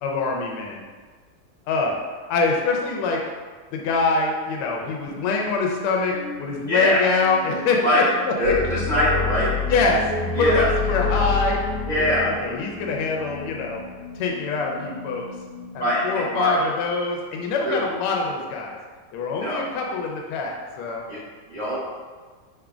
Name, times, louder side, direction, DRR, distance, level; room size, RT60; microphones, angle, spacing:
voice 1, 0.0-0.8 1.7-1.9 2.3-3.2 3.7-8.8 9.7-11.6 12.1-13.8 14.1-15.2 15.7-18.8 19.1-21.0, left 4 dB, 90° left, 0 dB, 1.5 m, -24 dB
sound 1, 5.0-17.2, left 1 dB, 65° left, 1.3 m, -40 dB
voice 2, 6.7-7.0 7.8-8.0 8.4-9.5 10.3-10.7 11.9-12.2 15.8-16.6 17.6-17.8 19.4-19.7 21.1-21.2 21.5-21.8, equal, 55° right, -10 dB, 0.5 m, -22 dB
sound 2, 8.4-13.9, left 5 dB, 85° right, 1.6 m, -28 dB
4.8 x 3.7 x 2.3 m, 1.4 s
omnidirectional pair, 2.3 m